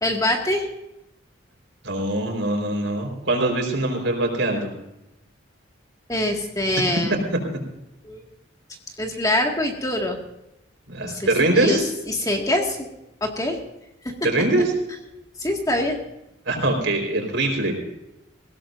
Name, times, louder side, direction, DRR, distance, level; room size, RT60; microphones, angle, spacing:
voice 1, 0.0-0.7 6.1-7.2 8.0-8.2 9.0-10.2 11.0-12.9 13.2-13.6 14.0-14.1 15.4-16.0, left 1 dB, 20° left, 1 dB, 2.0 m, -24 dB
voice 2, 1.8-4.7 10.9-11.8 14.2-14.7 16.5-17.8, right 2 dB, 70° right, 2 dB, 4.4 m, -22 dB
21.0 x 17.0 x 2.6 m, 0.89 s
head